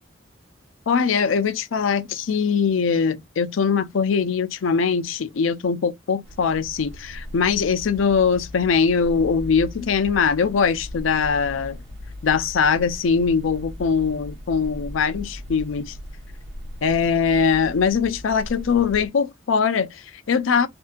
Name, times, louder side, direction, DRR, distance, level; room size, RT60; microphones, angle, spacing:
voice 1, 0.9-11.8 12.2-16.0 16.8-20.7, left 6 dB, 85° left, 0.5 m, -21 dB
sound 1, 6.2-19.1, left 1 dB, 75° right, 1.0 m, -38 dB
2.7 x 2.5 x 2.3 m
head